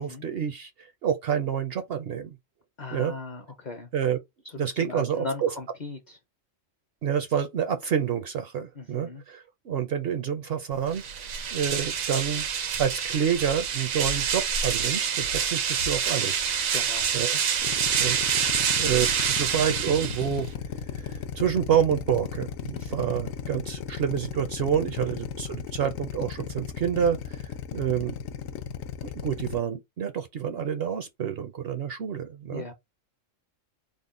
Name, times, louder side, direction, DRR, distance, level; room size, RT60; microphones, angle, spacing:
voice 1, 0.0-2.4 2.9-3.1 3.9-4.2 4.6-5.5 7.0-11.0 11.5-12.5 12.8-16.5 17.1-17.4 17.7-20.5 20.9-28.1 29.0-32.6, right 8 dB, 60° right, 0.6 m, -28 dB
voice 2, 2.8-3.9 4.5-6.2 8.8-9.2 16.7-17.1 22.7-22.9 25.0-25.2 32.5-32.7, left 3 dB, 50° left, 0.6 m, -38 dB
sound 1, 10.9-20.5, right 7 dB, 85° right, 1.1 m, -27 dB
Drill, 17.6-29.6, left 8 dB, 85° left, 1.0 m, -35 dB
3.6 x 2.1 x 3.6 m
omnidirectional pair, 1.3 m